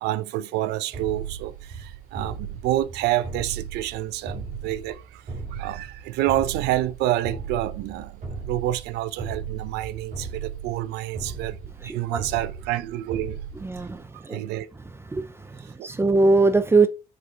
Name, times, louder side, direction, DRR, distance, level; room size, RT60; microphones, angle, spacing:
voice 1, 0.0-5.2 5.5-8.1 8.5-11.6 11.8-13.4 14.3-14.7 15.8-15.9, right 14 dB, 90° right, 0.6 m, -28 dB
sound 1, 0.9-14.0, right 5 dB, 50° right, 2.7 m, -36 dB
voice 2, 11.8-12.2 13.6-14.4 15.1-16.9, right 3 dB, 15° right, 0.6 m, -22 dB
6.5 x 5.1 x 4.4 m
cardioid pair, 110°, 17 cm